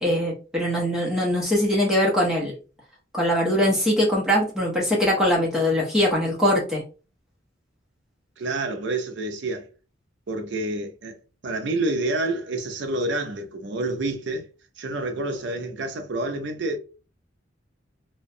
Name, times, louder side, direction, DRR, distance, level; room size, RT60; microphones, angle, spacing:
voice 1, 0.0-2.5 3.1-6.8, equal, 5° right, 0.6 m, -22 dB
voice 2, 8.4-9.7 10.3-11.2 11.4-14.5 14.8-16.8, right 2 dB, 60° right, 0.5 m, -28 dB
2.5 x 2.1 x 2.6 m
head